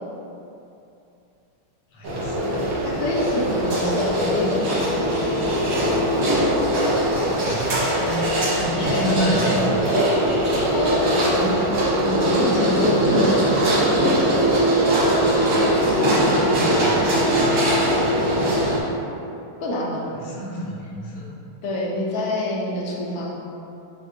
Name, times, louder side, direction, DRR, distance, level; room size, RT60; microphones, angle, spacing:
voice 1, 1.9-2.7 3.3-3.5 7.4-9.9 17.2-17.7 20.1-21.4, equal, 85° left, -4 dB, 1.6 m, -29 dB
sound 1, 2.0-18.8, equal, 65° right, 1.6 m, -21 dB
voice 2, 2.9-5.1 10.7-11.6 12.0-14.1 19.6-20.1 21.6-23.3, left 1 dB, 70° left, -5 dB, 0.9 m, -26 dB
6.2 x 2.7 x 2.5 m, 2.7 s
omnidirectional pair, 2.4 m